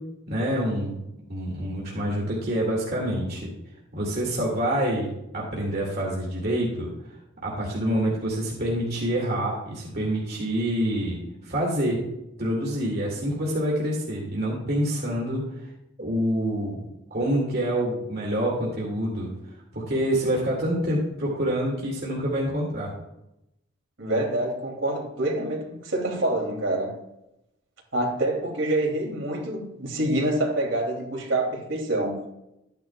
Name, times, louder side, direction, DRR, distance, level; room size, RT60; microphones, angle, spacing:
voice 1, 0.3-1.0 1.3-3.5 3.9-6.9 7.4-11.2 11.4-12.0 12.4-15.4 16.0-16.8 17.1-19.3 19.7-22.9, equal, 50° right, -4 dB, 2.3 m, -26 dB
voice 2, 24.0-26.9 27.9-32.2, right 1 dB, 75° right, 0 dB, 3.0 m, -26 dB
13.0 x 10.5 x 2.4 m, 0.88 s
head